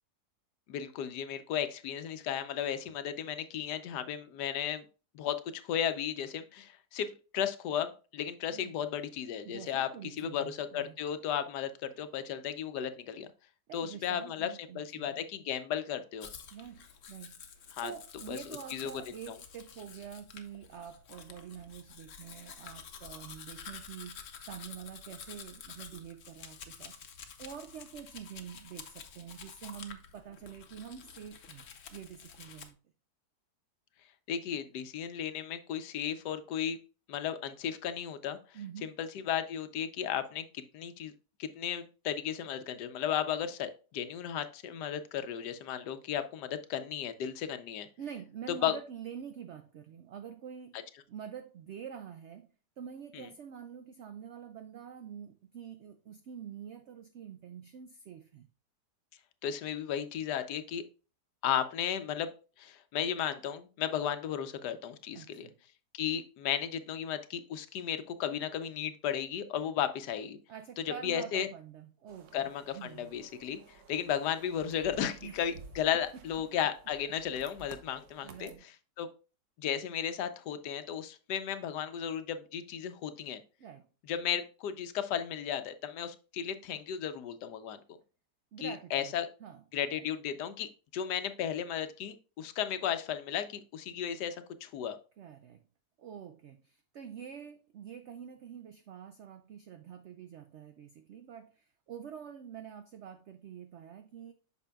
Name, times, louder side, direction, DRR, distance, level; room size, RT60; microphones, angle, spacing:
voice 1, 0.7-4.8 5.1-9.9 10.2-13.3 13.7-16.3 17.7-17.9 18.3-18.4 18.7-18.9 19.3-19.4 34.3-36.8 37.1-38.4 38.8-41.1 41.4-47.9 48.6-48.8 50.7-50.8 53.1-53.3 59.4-60.8 61.4-62.3 62.6-65.5 65.9-70.4 71.0-71.5 72.3-73.6 73.9-78.5 79.0-79.1 79.6-83.4 84.1-87.8 88.6-89.3 89.7-94.4 94.6-95.0, left 9 dB, 80° left, 1.2 m, -34 dB
voice 2, 9.4-11.0 13.7-15.2 16.5-17.4 17.8-27.0 27.4-32.8 38.5-38.9 48.0-50.8 51.1-52.5 52.8-58.5 65.1-65.5 70.5-73.1 75.2-75.4 75.9-76.2 78.2-78.7 83.6-83.9 88.5-89.6 89.9-90.0 95.2-95.6 96.0-104.3, right 8 dB, 90° right, 0.6 m, -46 dB
Domestic sounds home sounds, 16.2-32.7, left 7 dB, 55° left, 1.0 m, -50 dB
sound 1, 72.1-78.6, right 4 dB, 65° right, 1.3 m, -54 dB
8.2 x 6.0 x 2.3 m
omnidirectional pair, 1.8 m